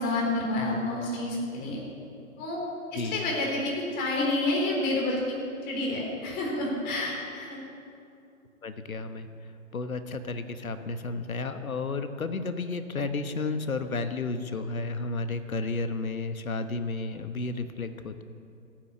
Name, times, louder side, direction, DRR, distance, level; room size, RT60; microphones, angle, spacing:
voice 1, 0.0-1.8 2.4-2.6 2.9-5.2 5.7-7.6, left 2 dB, 25° left, -2 dB, 3.8 m, -29 dB
voice 2, 2.9-3.3 8.6-9.3 9.7-18.2, left 3 dB, 80° left, 9 dB, 1.3 m, -32 dB
15.0 x 9.3 x 8.4 m, 2.5 s
figure-of-eight pair, 130°, 41 cm